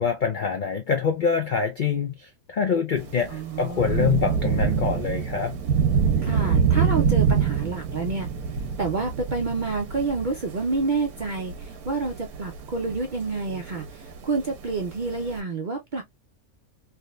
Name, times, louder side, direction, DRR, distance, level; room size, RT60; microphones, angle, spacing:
voice 1, 0.0-5.6, left 6 dB, 75° left, 0.4 m, -25 dB
Thunder / Rain, 3.0-15.4, right 7 dB, 85° right, 1.3 m, -26 dB
voice 2, 3.3-4.1 6.2-8.3 8.8-16.0, right 4 dB, 55° right, 0.5 m, -28 dB
3.6 x 2.7 x 2.3 m
omnidirectional pair, 1.6 m